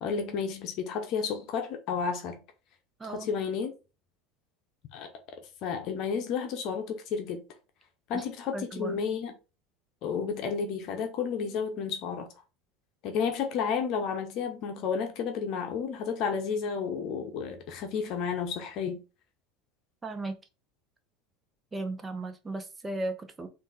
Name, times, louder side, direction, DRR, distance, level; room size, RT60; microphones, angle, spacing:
voice 1, 0.0-2.4 3.0-3.7 4.9-5.1 5.6-7.4 8.1-9.3 10.0-12.3 13.0-19.0, left 6 dB, 55° left, 0.8 m, -31 dB
voice 2, 3.0-3.3 8.1-8.2 8.5-9.0 20.0-20.4 21.7-23.5, right 2 dB, 20° right, 0.8 m, -36 dB
3.8 x 2.6 x 3.9 m
supercardioid pair, 105°, 0 cm